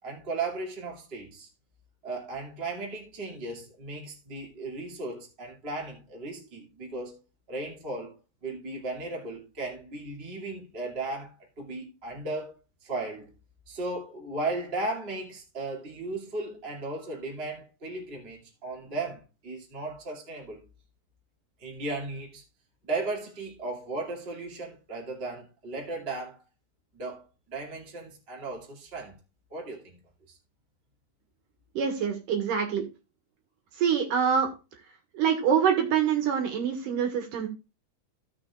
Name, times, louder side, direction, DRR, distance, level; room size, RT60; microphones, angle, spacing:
voice 1, 0.0-1.5 2.0-7.2 7.5-12.5 12.8-13.3 13.7-20.7 21.6-22.4 22.8-26.4 26.9-29.2 29.5-30.0 30.3-30.4, right 2 dB, 20° right, 2.2 m, -36 dB
voice 2, 31.7-32.8 33.8-34.5 35.1-37.5, right 7 dB, 70° right, 3.0 m, -25 dB
16.0 x 6.4 x 2.4 m
omnidirectional pair, 4.1 m